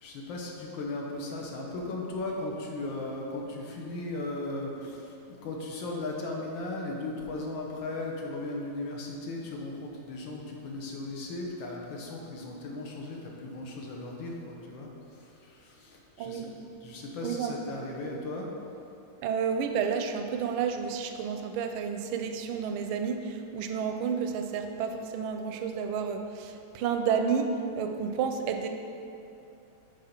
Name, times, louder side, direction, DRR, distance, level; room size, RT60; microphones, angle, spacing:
voice 1, 0.0-16.5 16.8-18.5, left 2 dB, 70° left, -1 dB, 1.7 m, -37 dB
voice 2, 16.2-16.5 17.2-17.6 19.2-28.7, right 6 dB, 85° right, 6 dB, 1.4 m, -31 dB
8.3 x 3.8 x 5.8 m, 2.8 s
omnidirectional pair, 2.3 m